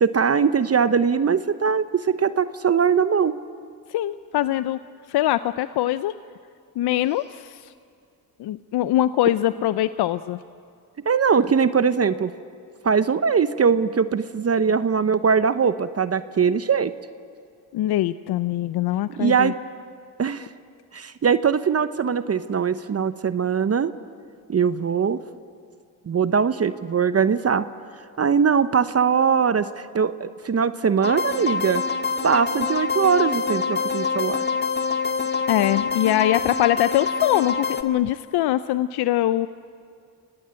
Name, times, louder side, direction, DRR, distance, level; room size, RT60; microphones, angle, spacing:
voice 1, 0.0-3.4 11.0-12.3 12.8-16.9 19.2-19.5 20.2-20.5 20.9-23.9 24.5-25.2 26.1-27.7 28.2-31.8 32.2-34.4, right 6 dB, 35° right, 13 dB, 0.9 m, -21 dB
voice 2, 3.9-4.8 5.1-6.1 6.8-7.7 8.4-10.4 17.7-19.5 35.5-39.5, left 13 dB, 70° left, 14 dB, 0.7 m, -22 dB
sound 1, 31.0-37.8, left 5 dB, 25° left, 2.0 m, -26 dB
26.0 x 18.5 x 8.9 m, 2.3 s
supercardioid pair, 60°, 41 cm